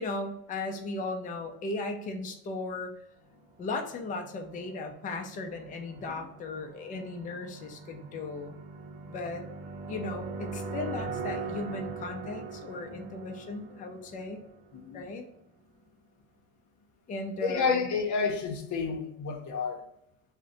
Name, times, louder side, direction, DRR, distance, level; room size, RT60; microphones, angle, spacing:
voice 1, 0.0-2.9 3.6-8.6 9.1-9.5 9.9-14.4 14.7-15.2 17.1-17.9, left 2 dB, 25° left, 0.3 m, -36 dB
sound 1, 4.0-14.8, right 4 dB, 85° right, 0.6 m, -41 dB
voice 2, 17.4-19.8, left 5 dB, 55° left, 0.6 m, -30 dB
2.6 x 2.1 x 3.7 m
cardioid pair, 140°, 36 cm